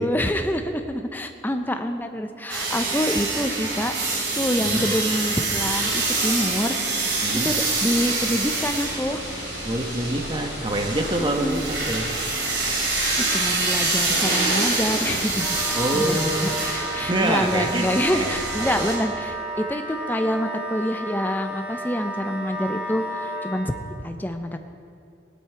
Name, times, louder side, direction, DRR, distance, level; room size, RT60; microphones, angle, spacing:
voice 1, 0.0-3.9 4.3-6.8 7.4-9.2 11.2-11.6 13.2-23.7 24.0-24.6, equal, 10° left, 7 dB, 0.6 m, -26 dB
sound 1, 2.5-19.0, right 3 dB, 70° right, 3.3 m, -26 dB
sound 2, 8.7-16.7, left 4 dB, 60° left, 1.2 m, -40 dB
voice 2, 9.6-12.1 15.7-16.5 17.1-17.9 18.1-18.9, right 1 dB, 25° right, 4 dB, 1.0 m, -26 dB
Wind instrument woodwind instrument, 15.4-23.7, right 1 dB, 5° right, 1.5 m, -32 dB
16.5 x 11.0 x 4.6 m, 2.4 s
head